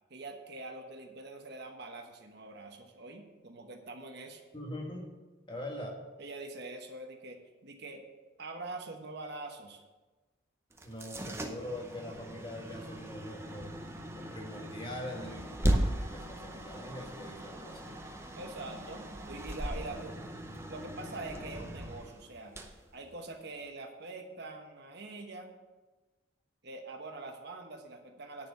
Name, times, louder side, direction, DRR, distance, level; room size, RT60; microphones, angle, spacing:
voice 1, 0.1-4.4 6.2-8.0 8.4-9.8 18.4-20.2 20.7-22.5 22.9-25.5 26.6-28.5, right 2 dB, 55° right, 4 dB, 1.1 m, -44 dB
voice 2, 4.5-5.2 5.5-6.0 10.8-13.7 14.1-18.0, left 1 dB, 25° left, 1 dB, 1.3 m, -43 dB
sound 1, 10.7-23.6, right 1 dB, 15° right, 0.7 m, -38 dB
10.0 x 4.5 x 7.4 m, 1.2 s
head